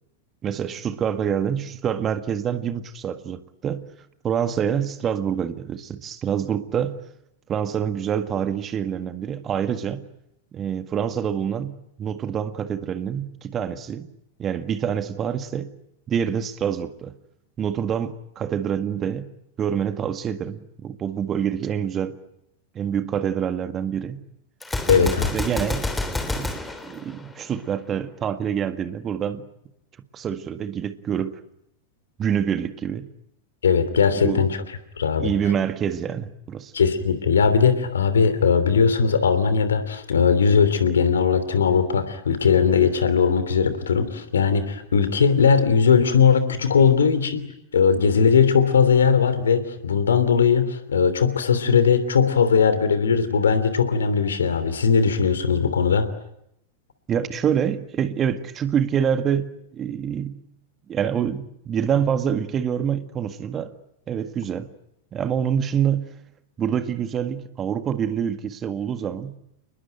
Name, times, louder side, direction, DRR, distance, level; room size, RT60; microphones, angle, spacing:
voice 1, 0.4-3.9 4.2-7.0 7.5-10.1 10.5-14.1 14.4-15.8 16.1-17.1 17.6-19.3 19.6-22.2 22.8-24.2 24.9-29.4 30.1-31.4 32.2-33.1 34.2-34.5 35.2-36.7 57.1-60.4 60.9-63.7 64.1-64.7 65.1-66.1 66.6-69.4, right 8 dB, 25° right, 1.7 m, -26 dB
Gunshot gunfire, 24.6-27.7, left 2 dB, 10° left, 3.3 m, -28 dB
voice 2, 24.9-25.3 33.6-34.6 35.0-35.3 36.7-47.4 47.7-56.1, left 6 dB, 70° left, 3.0 m, -19 dB
29.5 x 20.5 x 9.2 m
figure-of-eight pair, 90°, 0 cm